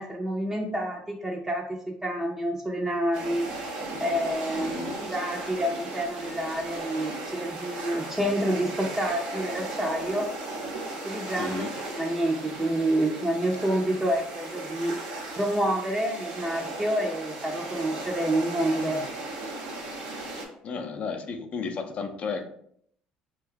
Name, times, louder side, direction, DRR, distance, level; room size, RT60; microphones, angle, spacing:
voice 1, 0.0-3.5 4.0-10.3 11.0-11.6 12.0-15.0 15.3-19.0, right 1 dB, 15° right, 0 dB, 0.5 m, -28 dB
sound 1, 3.1-20.4, right 2 dB, 90° right, 0.8 m, -36 dB
voice 2, 4.5-5.0 6.9-7.0 11.4-11.7 20.6-22.4, left 5 dB, 50° left, 5 dB, 0.5 m, -33 dB
2.6 x 2.3 x 3.4 m, 0.66 s
supercardioid pair, 75°, 3 cm